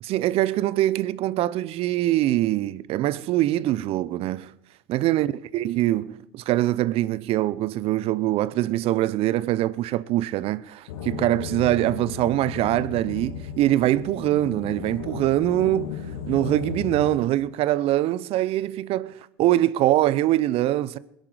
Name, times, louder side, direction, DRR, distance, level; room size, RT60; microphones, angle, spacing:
voice 1, 0.0-4.5 4.9-21.0, right 14 dB, 55° right, 0.7 m, -23 dB
sound 1, 10.9-17.2, left 8 dB, 75° left, 1.2 m, -35 dB
21.0 x 10.5 x 5.0 m
hypercardioid pair, 85°, 12 cm